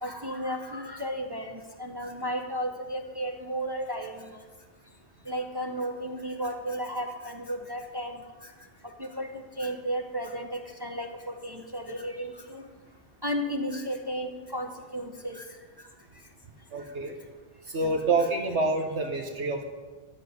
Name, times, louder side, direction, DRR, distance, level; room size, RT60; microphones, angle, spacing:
voice 1, 0.0-4.5 5.3-8.2 9.0-12.6 13.2-15.4, equal, 20° right, 3 dB, 0.9 m, -34 dB
voice 2, 16.7-17.2 17.6-19.6, right 3 dB, 70° right, 3 dB, 1.4 m, -27 dB
13.0 x 6.9 x 9.5 m, 1.4 s
omnidirectional pair, 1.2 m